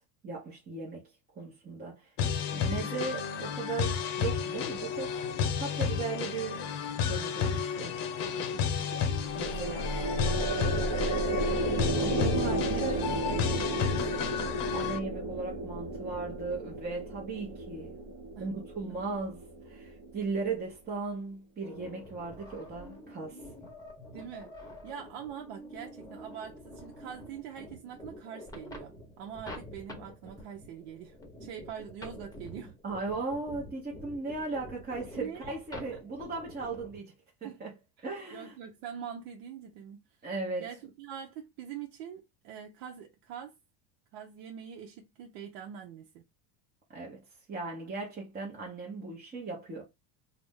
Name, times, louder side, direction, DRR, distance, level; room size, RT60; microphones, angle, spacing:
voice 1, 0.2-2.1 2.5-6.7 7.1-7.9 9.3-10.5 12.0-13.1 14.7-18.0 18.4-23.4 32.8-37.1 37.4-37.7 38.0-38.5 40.2-40.7 46.9-49.8, right 3 dB, 20° right, 0.8 m, -37 dB
sound 1, 2.2-15.0, left 7 dB, 60° left, 0.8 m, -32 dB
voice 2, 8.2-9.8 10.0-11.3 12.6-12.8 13.2-14.2 18.4-18.5 18.9-19.0 24.1-32.8 35.1-35.5 37.4-37.6 38.0-38.1 38.3-40.0 40.6-43.6 44.1-46.2, right 8 dB, 65° right, 0.7 m, -44 dB
sound 2, 9.0-20.5, right 2 dB, 40° right, 1.0 m, -33 dB
sound 3, 21.6-37.0, left 1 dB, 10° left, 0.9 m, -47 dB
2.4 x 2.1 x 3.5 m
supercardioid pair, 110°, 47 cm